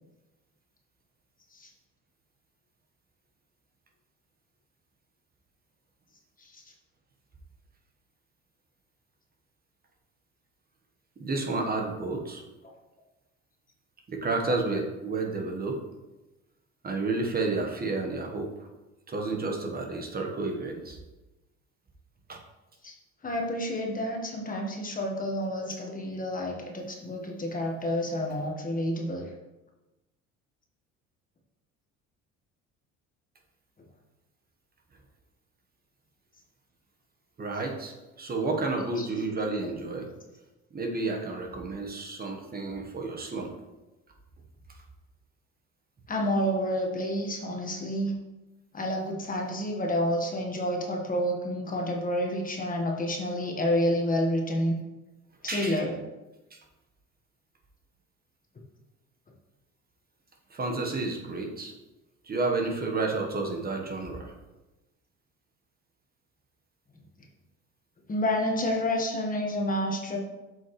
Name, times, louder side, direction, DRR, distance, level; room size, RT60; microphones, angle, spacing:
voice 1, 11.2-12.4 14.1-15.8 16.8-18.7 19.1-21.0 22.3-22.4 37.4-40.1 40.7-43.5 55.5-55.8 56.5-56.6 60.5-61.7 62.2-64.3, right 3 dB, 30° right, 2 dB, 1.2 m, -31 dB
voice 2, 23.2-29.3 39.0-39.1 46.1-48.1 48.7-54.7 55.4-55.9 68.1-70.2, left 1 dB, 30° left, 1 dB, 1.4 m, -29 dB
7.3 x 5.6 x 3.1 m, 1.0 s
supercardioid pair, 95°, 29 cm